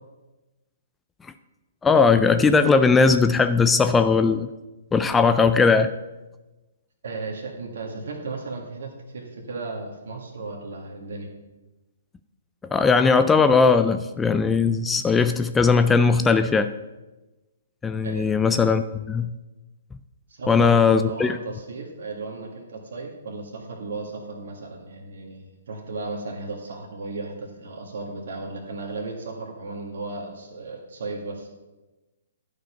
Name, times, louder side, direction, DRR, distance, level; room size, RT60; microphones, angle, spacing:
voice 1, 1.8-4.5 4.9-5.9 12.7-16.7 17.8-19.3 20.5-21.4, left 4 dB, 10° left, 10 dB, 0.4 m, -19 dB
voice 2, 7.0-11.3 18.0-18.2 20.3-31.5, right 3 dB, 65° right, 0 dB, 1.8 m, -35 dB
11.5 x 5.1 x 5.7 m, 1.1 s
hypercardioid pair, 130°, 0 cm